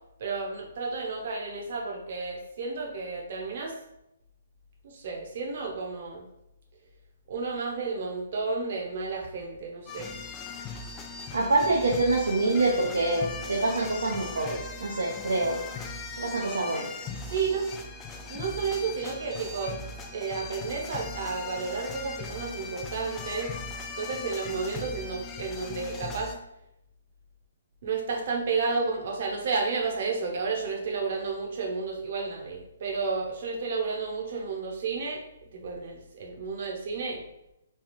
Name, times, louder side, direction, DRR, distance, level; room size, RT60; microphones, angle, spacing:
voice 1, 0.2-3.8 4.8-6.3 7.3-10.1 12.3-12.9 17.3-17.7 18.3-19.8 20.1-23.5 24.0-26.3 27.8-35.2 35.5-37.2, right 4 dB, 55° right, 1 dB, 0.9 m, -32 dB
sound 1, 9.9-26.4, left 4 dB, 15° left, 0.4 m, -39 dB
voice 2, 11.3-15.6 16.2-16.9, right 2 dB, 85° right, -2 dB, 0.7 m, -26 dB
3.4 x 2.3 x 4.3 m, 0.85 s
hypercardioid pair, 145°, 0 cm